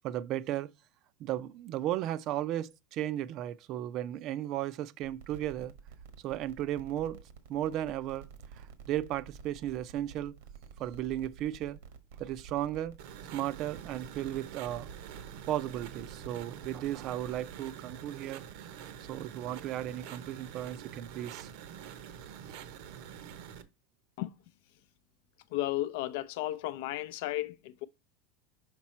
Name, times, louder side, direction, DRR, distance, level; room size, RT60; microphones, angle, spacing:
voice 1, 0.0-0.7 1.2-5.7 6.2-7.2 7.5-8.3 8.5-10.3 10.8-11.8 12.2-12.9 13.3-14.9 15.5-18.4 19.1-21.5, right 12 dB, 40° right, 0.4 m, -35 dB
sound 1, 5.0-17.5, right 6 dB, 85° right, 1.3 m, -51 dB
sound 2, 13.0-23.6, right 9 dB, 60° right, 0.8 m, -46 dB
voice 2, 25.5-27.8, left 15 dB, 65° left, 0.5 m, -34 dB
5.9 x 5.2 x 4.3 m
supercardioid pair, 160°, 0 cm